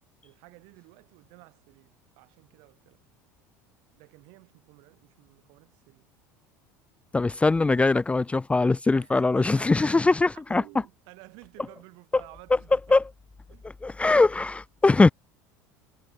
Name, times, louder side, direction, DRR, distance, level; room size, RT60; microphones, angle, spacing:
voice 1, 0.2-3.0 3.9-6.1 8.9-13.0 13.5-13.7, right 30 dB, 65° right, 7.5 m, -53 dB
voice 2, 7.1-10.6 12.9-13.0 13.8-15.1, left 3 dB, 15° left, 0.6 m, -21 dB
hypercardioid pair, 80°, 9 cm